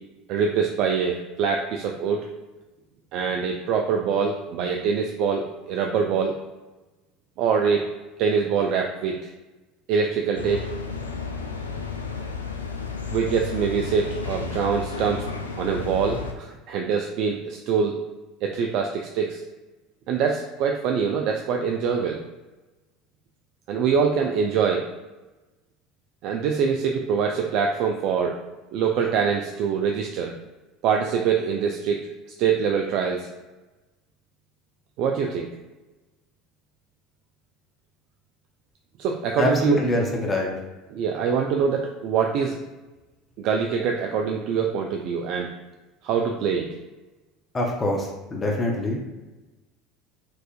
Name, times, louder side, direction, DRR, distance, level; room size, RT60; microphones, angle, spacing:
voice 1, 0.3-2.3 3.1-6.3 7.4-7.9 8.2-9.3 9.9-10.6 13.1-15.3 15.6-17.9 18.4-19.4 20.1-22.2 23.7-24.9 26.2-28.4 28.7-30.3 30.8-32.0 32.4-33.3 35.0-35.5 39.0-39.8 40.9-42.6 43.4-45.5 46.0-46.7, right 6 dB, 55° right, 2 dB, 0.3 m, -24 dB
sound 1, 10.3-16.3, left 5 dB, 85° left, 0.3 m, -32 dB
voice 2, 39.4-40.5 47.5-49.0, left 1 dB, 25° left, 0 dB, 0.7 m, -24 dB
4.4 x 2.4 x 2.4 m, 1.1 s
figure-of-eight pair, 70°, 0 cm